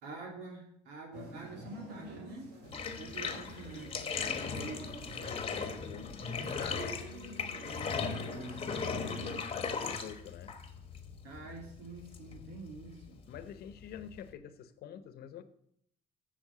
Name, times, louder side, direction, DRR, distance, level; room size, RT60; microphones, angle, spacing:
voice 1, 0.0-2.5 3.0-3.9 7.7-8.5 11.2-13.2, right 2 dB, 90° right, -1 dB, 2.7 m, -47 dB
sound 1, 1.1-9.4, right 1 dB, 70° right, 2.9 m, -46 dB
Bathtub (filling or washing), 2.7-14.3, left 5 dB, 35° left, 1.2 m, -38 dB
voice 2, 5.1-7.0 9.5-10.5 13.3-15.4, left 9 dB, 70° left, 12 dB, 0.9 m, -47 dB
7.5 x 7.2 x 6.9 m, 0.70 s
cardioid pair, 110°, 17 cm